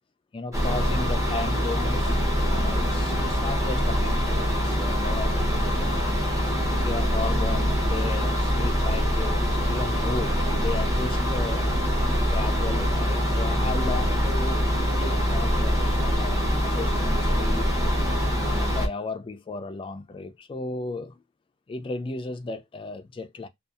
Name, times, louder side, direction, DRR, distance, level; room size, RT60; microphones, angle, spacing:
voice 1, 0.3-6.3 6.8-11.7 12.1-14.6 15.0-17.7 18.3-21.2 21.7-23.5, left 3 dB, 25° left, 0.3 m, -35 dB
sound 1, 0.5-18.9, equal, 15° right, 0.7 m, -24 dB
2.6 x 2.3 x 2.3 m
head